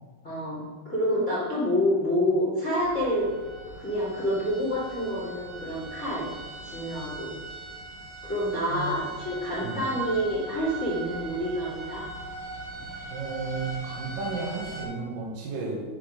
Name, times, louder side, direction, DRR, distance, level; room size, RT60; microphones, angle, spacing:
voice 1, 0.2-3.2 3.8-6.3 6.6-7.3 8.2-12.0, equal, 80° left, -8 dB, 0.6 m, -28 dB
sound 1, 2.8-14.8, right 2 dB, 35° right, 2.6 m, -40 dB
voice 2, 8.7-9.0 9.6-9.8 13.1-15.8, right 4 dB, 80° right, -3 dB, 1.9 m, -33 dB
8.2 x 6.2 x 5.0 m, 1.4 s
omnidirectional pair, 5.9 m